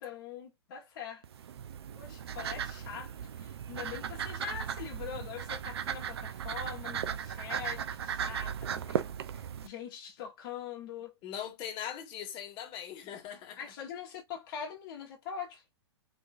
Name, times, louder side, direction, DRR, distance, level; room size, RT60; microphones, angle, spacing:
voice 1, 0.0-1.2 1.9-11.1 13.6-15.6, left 8 dB, 50° left, 1.3 m, -43 dB
sound 1, 1.2-9.7, right 8 dB, 65° right, 0.7 m, -37 dB
voice 2, 11.2-13.6, left 9 dB, 35° left, 1.6 m, -40 dB
5.2 x 3.0 x 2.5 m
figure-of-eight pair, 110°, 14 cm